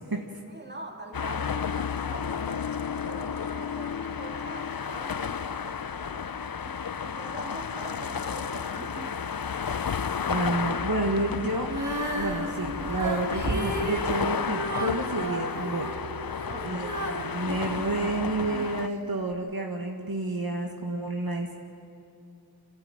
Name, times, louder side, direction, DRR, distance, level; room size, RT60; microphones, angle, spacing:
voice 1, 0.0-6.3 6.5-9.2 16.3-16.9, right 2 dB, 25° right, 2 dB, 2.5 m, -43 dB
sound 1, 1.1-18.9, left 7 dB, 65° left, 0.6 m, -32 dB
voice 2, 10.3-11.7 12.1-15.9 16.6-21.5, right 2 dB, 65° right, 1 dB, 1.7 m, -30 dB
Female singing, 11.6-18.7 19.3-19.4, right 1 dB, 50° right, 2.0 m, -34 dB
27.0 x 13.0 x 8.9 m, 2.4 s
wide cardioid pair, 40°, 39 cm